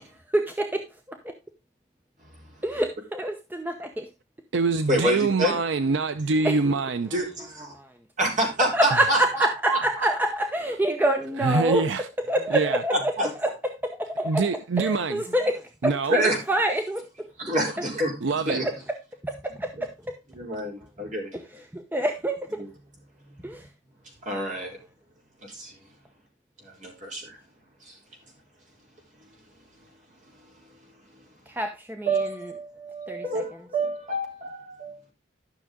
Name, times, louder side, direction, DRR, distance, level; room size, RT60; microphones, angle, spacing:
voice 1, 0.3-1.4 2.6-4.1 4.9-5.2 6.3-6.8 7.1-7.2 7.5-7.9 8.7-17.3 17.8-17.9 18.5-20.2 21.3-22.6 23.4-23.7 31.5-32.6 33.1-33.6 34.5-34.6, right 1 dB, 10° right, 0.8 m, -28 dB
voice 2, 2.2-2.6 4.9-5.5 7.1-7.7 8.2-10.1 12.9-13.3 16.1-16.4 17.4-18.7 19.7-19.8 20.3-21.3 22.6-22.7 23.3-23.5 24.2-24.8 25.4-25.8 26.6-27.4 27.8-28.0 30.3-30.8 32.1-35.0, right 1 dB, 40° right, 4.0 m, -28 dB
voice 3, 4.5-7.1 11.4-12.0 12.5-12.8 14.2-15.2 15.8-16.2 18.2-18.6, right 4 dB, 70° right, 0.5 m, -24 dB
12.0 x 6.2 x 3.6 m
head